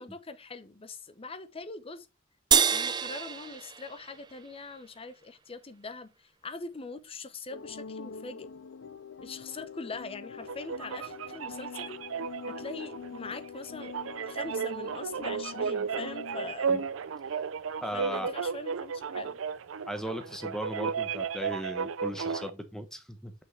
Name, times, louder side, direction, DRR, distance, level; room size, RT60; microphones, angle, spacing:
voice 1, 0.0-2.1 2.7-8.5 9.2-12.0 12.5-13.9 14.3-16.7 17.9-19.4, left 3 dB, 30° left, 0.8 m, -42 dB
sound 1, 2.5-5.1, right 8 dB, 20° right, 0.3 m, -28 dB
sound 2, 7.5-16.5, left 6 dB, 90° left, 0.5 m, -44 dB
sound 3, 10.4-22.5, right 6 dB, 85° right, 0.5 m, -34 dB
voice 2, 17.8-18.3 19.9-23.3, equal, 5° left, 1.1 m, -37 dB
6.1 x 5.8 x 3.2 m
head